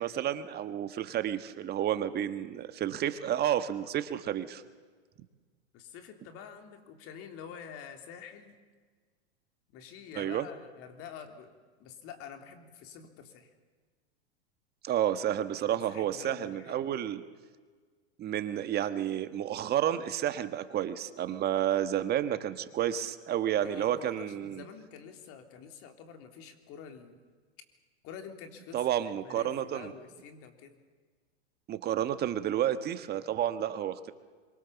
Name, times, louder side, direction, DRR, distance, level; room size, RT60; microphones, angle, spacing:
voice 1, 0.0-4.6 10.1-10.5 14.8-17.2 18.2-24.6 28.7-29.9 31.7-34.1, right 11 dB, 30° right, 11 dB, 1.4 m, -31 dB
voice 2, 5.7-8.6 9.7-11.5 11.8-13.5 15.7-17.0 23.6-27.2 28.0-28.9 29.2-30.8, left 7 dB, 40° left, 6 dB, 3.5 m, -47 dB
26.5 x 24.0 x 7.1 m, 1.5 s
hypercardioid pair, 125°, 34 cm